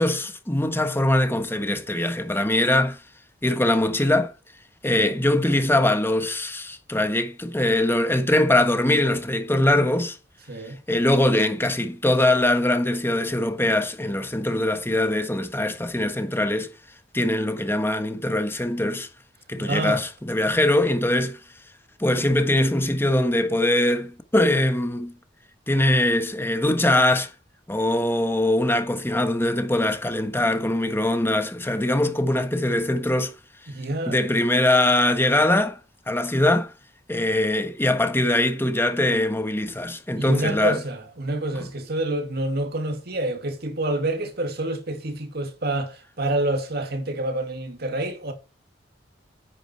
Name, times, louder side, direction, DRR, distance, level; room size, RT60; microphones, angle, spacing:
voice 1, 0.0-3.0 3.4-4.3 4.8-10.2 10.9-16.7 17.1-19.1 19.5-21.4 22.0-25.1 25.7-27.3 27.7-33.3 34.0-35.8 36.1-36.7 37.1-40.8 41.5-41.7, left 1 dB, 10° left, 1.4 m, -22 dB
voice 2, 19.6-20.0 33.7-34.2 40.2-48.3, right 1 dB, 55° right, 2.2 m, -27 dB
10.0 x 9.0 x 4.5 m
head